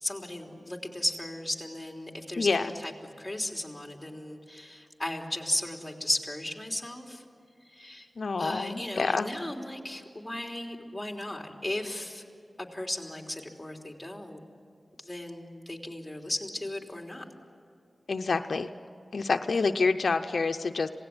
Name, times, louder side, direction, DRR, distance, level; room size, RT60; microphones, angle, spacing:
voice 1, 0.0-2.9 3.2-7.2 7.7-8.1 8.4-12.2 12.6-14.4 15.0-17.2 19.5-19.6, left 1 dB, 10° left, 1 dB, 3.4 m, -35 dB
voice 2, 2.4-2.7 8.2-9.3 18.1-18.7 19.1-20.9, left 4 dB, 75° left, 7 dB, 0.7 m, -27 dB
27.0 x 18.0 x 9.7 m, 2.4 s
wide cardioid pair, 75°, 0 cm